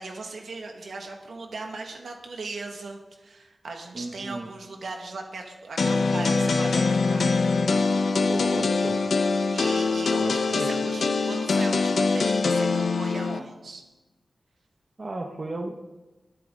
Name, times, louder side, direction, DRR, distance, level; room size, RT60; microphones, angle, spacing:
voice 1, 0.0-7.3 9.5-13.8, right 3 dB, 85° right, 2 dB, 1.9 m, -38 dB
voice 2, 3.9-4.5 8.2-9.0 10.2-10.8 15.0-15.8, right 2 dB, 40° right, 2 dB, 1.2 m, -34 dB
sound 1, 5.8-13.4, left 4 dB, 80° left, 0.9 m, -23 dB
20.5 x 9.7 x 4.0 m, 1.1 s
wide cardioid pair, 125°, 0 cm